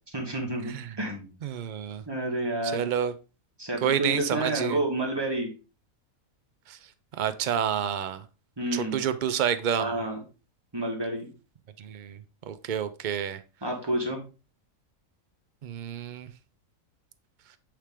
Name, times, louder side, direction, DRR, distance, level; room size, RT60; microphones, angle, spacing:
voice 1, 0.1-1.3 2.1-2.8 3.6-5.5 8.6-9.0 9.8-10.2 10.7-11.3 13.6-14.2, right 1 dB, 20° right, 1 dB, 1.5 m, -29 dB
voice 2, 1.4-2.0 2.7-3.1 3.8-4.8 6.7-6.8 7.2-8.2 8.7-10.0 11.8-12.2 12.5-13.4 15.6-16.3, right 9 dB, 65° right, 12 dB, 0.4 m, -29 dB
8.7 x 3.3 x 3.5 m, 0.32 s
omnidirectional pair, 1.4 m